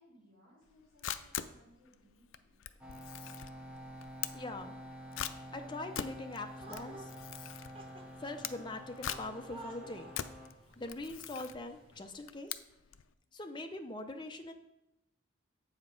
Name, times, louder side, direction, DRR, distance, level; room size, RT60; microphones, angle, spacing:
voice 1, 0.0-2.6, equal, 45° right, -7 dB, 3.1 m, -64 dB
Camera, 0.7-13.1, left 10 dB, 75° left, 0.4 m, -43 dB
sound 1, 2.8-10.5, equal, 5° right, 0.8 m, -49 dB
voice 2, 4.3-4.7 5.5-7.1 8.2-10.1 10.8-12.6 13.3-14.5, left 2 dB, 25° left, 5 dB, 0.5 m, -42 dB
sound 2, 6.6-12.0, right 2 dB, 25° right, 0.9 m, -54 dB
7.7 x 5.0 x 5.2 m, 0.90 s
head